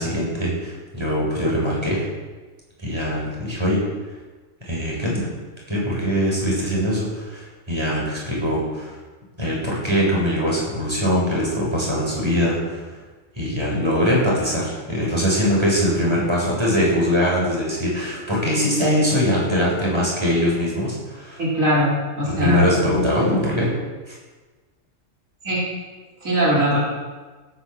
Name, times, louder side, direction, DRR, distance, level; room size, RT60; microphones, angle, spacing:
voice 1, 0.0-2.1 2.8-3.8 4.7-5.3 5.7-8.9 9.4-12.9 13.4-21.4 22.2-23.8 24.1-24.2, equal, 20° right, -4 dB, 7.3 m, -22 dB
voice 2, 21.4-22.6 25.4-25.6 26.2-26.8, equal, 85° right, -6 dB, 4.9 m, -20 dB
17.0 x 10.5 x 7.6 m, 1.3 s
omnidirectional pair, 1.3 m